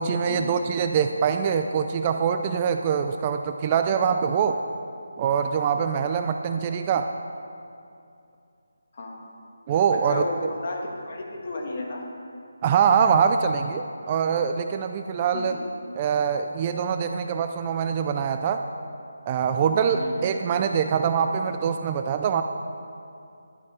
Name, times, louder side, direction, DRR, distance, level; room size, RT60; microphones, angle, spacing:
voice 1, 0.0-4.6 5.2-7.1 9.7-10.2 12.6-15.6 15.9-18.6 19.3-22.4, right 7 dB, 20° right, 7 dB, 0.3 m, -24 dB
voice 2, 8.9-9.3 9.9-12.0 15.3-15.6 20.0-20.3, left 2 dB, 45° left, 0 dB, 1.9 m, -33 dB
11.0 x 8.1 x 5.6 m, 2.6 s
figure-of-eight pair, 170°, 0 cm